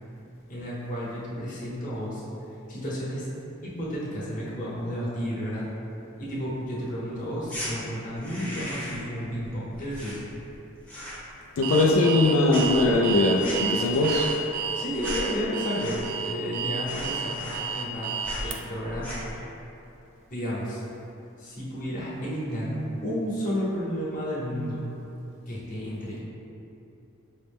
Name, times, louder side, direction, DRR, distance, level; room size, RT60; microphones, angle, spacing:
voice 1, 0.5-2.2 2.7-3.3 3.6-5.7 6.2-10.2 14.7-19.1 20.3-20.8 21.4-22.8 23.0-24.8 25.5-26.2, equal, 40° left, -8 dB, 0.9 m, -32 dB
sound 1, 7.4-7.7 8.1-9.1 9.4-10.6 10.8-11.3 11.6-12.2 12.5-16.3 16.5-16.6 16.8-17.9 18.2-18.5 18.9-19.4, left 1 dB, 5° left, 0.7 m, -37 dB
voice 2, 11.6-14.3, left 2 dB, 70° left, -3 dB, 0.3 m, -21 dB
Alarm, 11.6-18.6, right 6 dB, 70° right, 0.4 m, -31 dB
5.3 x 2.0 x 3.5 m, 2.9 s
head